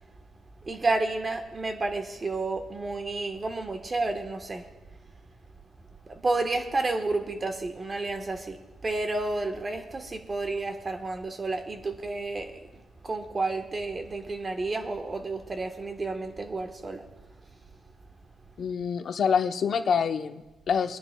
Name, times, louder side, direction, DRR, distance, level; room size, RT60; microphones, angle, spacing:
voice 1, 0.6-4.7 6.0-17.0, right 3 dB, 30° right, 5 dB, 1.2 m, -31 dB
voice 2, 18.6-21.0, left 6 dB, 60° left, 7 dB, 0.7 m, -26 dB
27.0 x 10.0 x 2.3 m, 1.1 s
cardioid pair, 95°, 0 cm